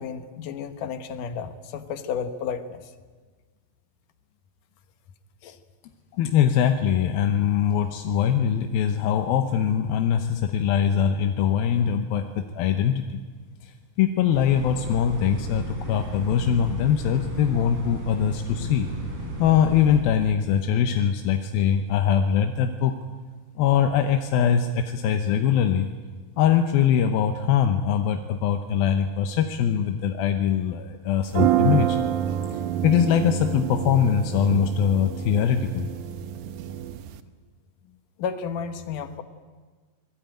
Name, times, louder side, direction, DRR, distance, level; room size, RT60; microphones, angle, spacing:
voice 1, 0.0-2.9 5.4-5.6 37.8-39.2, left 6 dB, 70° left, 9 dB, 2.7 m, -32 dB
voice 2, 6.2-13.2 13.6-18.9 19.4-23.0 23.6-25.9 26.4-32.0 32.5-35.9, left 8 dB, 90° left, 6 dB, 2.8 m, -22 dB
sound 1, 14.3-20.0, right 2 dB, 45° right, 5.8 m, -34 dB
sound 2, 31.3-37.2, right 10 dB, 70° right, 2.2 m, -27 dB
26.0 x 20.0 x 9.1 m, 1.4 s
omnidirectional pair, 4.1 m